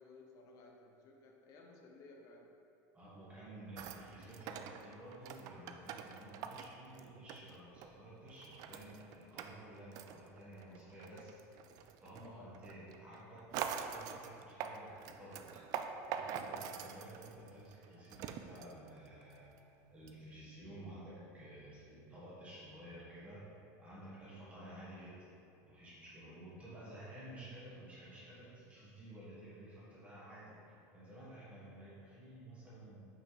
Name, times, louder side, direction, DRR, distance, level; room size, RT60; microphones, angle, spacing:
voice 1, 0.0-2.5 12.2-12.6 15.0-15.6, left 3 dB, 45° left, 1 dB, 0.8 m, -58 dB
voice 2, 2.9-11.6 12.0-15.4 16.1-19.6 19.9-25.2 25.6-33.1, right 1 dB, 15° right, -8 dB, 1.5 m, -53 dB
sound 1, 3.8-8.0 8.3-19.6 20.1-20.2, right 8 dB, 50° right, 0.4 m, -45 dB
5.9 x 4.2 x 4.9 m, 2.7 s
cardioid pair, 150°, 8 cm